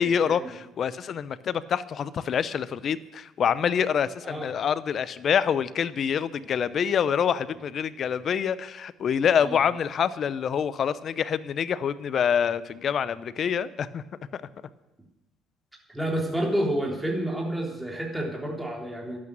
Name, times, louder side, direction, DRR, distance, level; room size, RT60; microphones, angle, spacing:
voice 1, 0.0-14.0 14.3-14.4, left 8 dB, 55° left, 16 dB, 0.7 m, -26 dB
voice 2, 15.9-19.2, right 1 dB, 10° right, -2 dB, 3.5 m, -29 dB
12.0 x 8.7 x 9.1 m, 0.98 s
hypercardioid pair, 60°, 0 cm